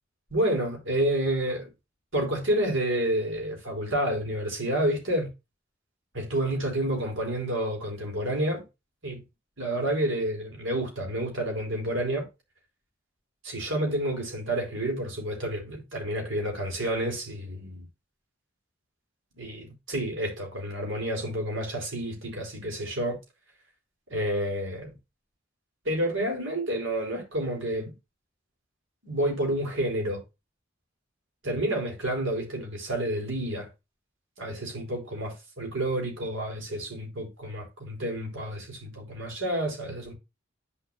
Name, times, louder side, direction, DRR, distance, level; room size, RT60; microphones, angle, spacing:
voice 1, 0.3-1.7 2.1-5.3 6.1-8.6 9.0-9.2 9.6-12.3 13.4-17.8 19.3-23.2 24.1-24.9 25.8-27.9 29.0-30.2 31.4-33.7 34.4-40.1, right 1 dB, 75° right, 4.4 m, -29 dB
11.0 x 5.2 x 2.5 m
head